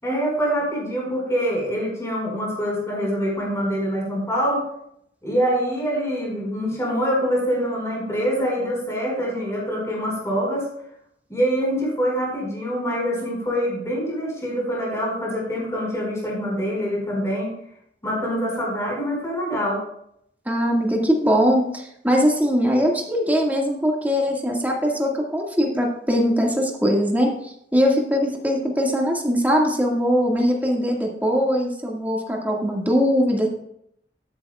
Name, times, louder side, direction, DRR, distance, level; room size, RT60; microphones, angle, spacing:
voice 1, 0.0-4.6 5.2-10.7 11.3-17.5 18.0-19.8, equal, 15° left, -3 dB, 5.0 m, -25 dB
voice 2, 20.5-33.5, equal, 10° right, -1 dB, 1.9 m, -21 dB
12.5 x 12.0 x 2.4 m, 0.72 s
head